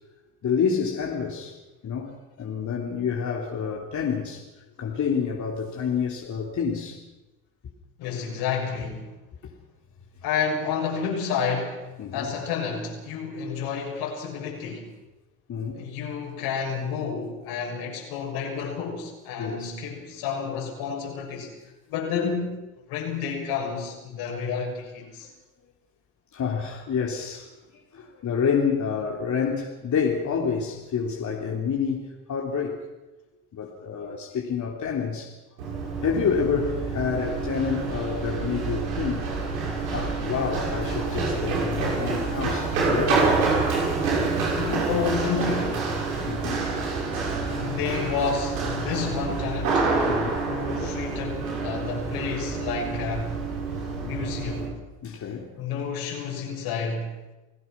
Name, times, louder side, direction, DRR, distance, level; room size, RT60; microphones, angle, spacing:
voice 1, 0.4-1.5 1.8-4.4 4.8-7.0 12.0-12.3 15.5-15.8 19.4-19.7 26.3-27.5 27.9-32.8 33.5-35.3 36.0-39.3 39.7-43.3 46.3-46.7 50.1-50.4 55.0-55.5, left 6 dB, 45° left, -1 dB, 3.6 m, -28 dB
voice 2, 8.0-9.1 10.2-11.8 12.1-14.9 15.7-21.5 21.9-22.6 22.9-25.3 44.6-45.9 47.4-49.9 50.5-53.3 54.0-54.7 55.6-57.1, left 6 dB, 70° left, 1 dB, 6.7 m, -30 dB
Run, 35.6-54.7, right 4 dB, 90° right, 6.5 m, -27 dB
29.5 x 17.5 x 6.0 m, 1.1 s
hypercardioid pair, 65°, 40 cm